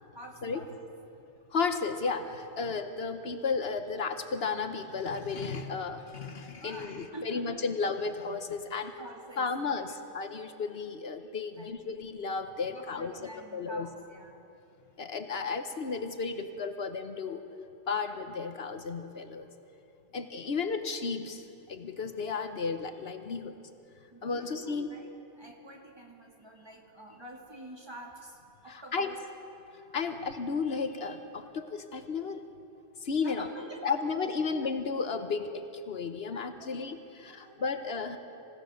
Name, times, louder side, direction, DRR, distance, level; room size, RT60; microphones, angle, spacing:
voice 1, 0.1-0.9 6.6-7.6 8.4-9.8 11.5-11.8 12.6-14.4 20.1-20.3 24.1-25.1 25.4-29.2 29.6-30.0 33.2-34.0 36.3-36.7 37.3-37.9, right 1 dB, 25° right, 0 dB, 2.5 m, -47 dB
voice 2, 1.5-8.9 9.4-13.1 13.5-13.9 15.0-17.4 17.9-19.5 20.1-23.6 24.2-24.9 28.7-29.1 29.7-32.5 33.0-33.5 33.8-38.2, left 4 dB, 65° left, 8 dB, 1.2 m, -33 dB
27.0 x 17.0 x 6.5 m, 2.8 s
omnidirectional pair, 1.1 m